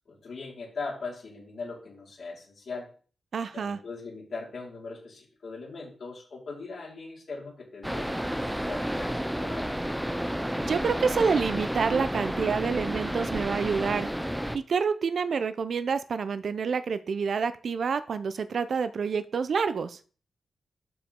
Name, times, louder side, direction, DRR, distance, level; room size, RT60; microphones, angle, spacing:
voice 1, 0.1-2.9 3.5-9.7, left 4 dB, 55° left, -4 dB, 4.5 m, -40 dB
voice 2, 3.3-3.8 10.7-14.1 14.5-20.0, right 5 dB, 55° right, 12 dB, 0.6 m, -28 dB
sound 1, 7.8-14.6, equal, 5° right, 0.5 m, -31 dB
11.5 x 4.9 x 3.7 m, 0.40 s
wide cardioid pair, 155°, 0 cm